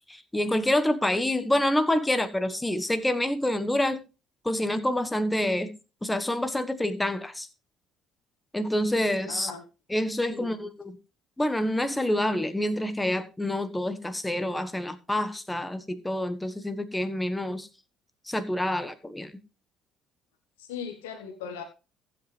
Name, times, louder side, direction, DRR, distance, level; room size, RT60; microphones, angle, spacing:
voice 1, 0.1-4.0 4.4-5.7 6.0-7.5 8.5-9.5 9.9-11.0 11.4-17.7 18.3-19.3, left 1 dB, 10° left, 1.4 m, -27 dB
voice 2, 9.3-9.6 10.2-10.5 20.6-21.6, left 7 dB, 80° left, 1.2 m, -38 dB
15.0 x 7.9 x 3.4 m
hypercardioid pair, 55°, 0 cm